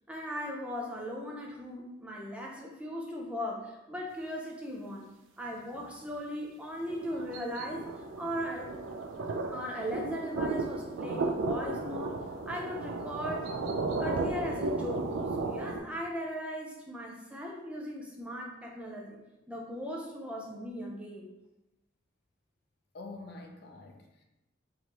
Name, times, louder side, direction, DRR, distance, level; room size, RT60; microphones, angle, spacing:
voice 1, 0.1-5.1 5.4-8.7 9.2-12.2 12.5-13.6 14.0-19.2 19.5-21.3, equal, 5° right, -1 dB, 0.5 m, -38 dB
sound 1, 6.8-15.8, right 3 dB, 80° right, 0.4 m, -34 dB
voice 2, 22.9-24.2, left 3 dB, 55° left, 3 dB, 0.5 m, -46 dB
4.3 x 2.7 x 3.0 m, 0.96 s
head